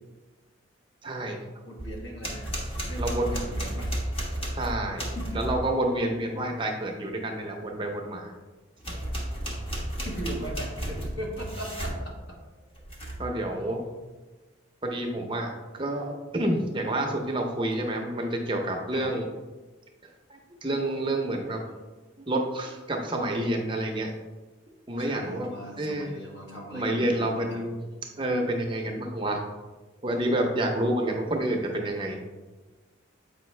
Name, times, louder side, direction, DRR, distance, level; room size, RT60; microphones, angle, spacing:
voice 1, 1.0-1.4 3.0-3.4 4.6-5.1 5.3-8.3 13.2-13.8 14.8-19.3 20.3-21.6 22.2-24.1 24.9-25.5 25.8-26.1 26.7-27.8 28.2-29.4 30.0-32.2, right 1 dB, 25° right, 2 dB, 0.6 m, -29 dB
voice 2, 1.6-2.5 2.9-3.9 5.1-5.4 9.7-12.4 18.9-19.2 25.0-27.6, right 1 dB, 60° left, -1 dB, 1.5 m, -39 dB
sound 1, 1.8-5.7 8.8-12.0 12.8-13.3, equal, 25° left, 1.1 m, -33 dB
7.7 x 5.0 x 3.2 m, 1.3 s
head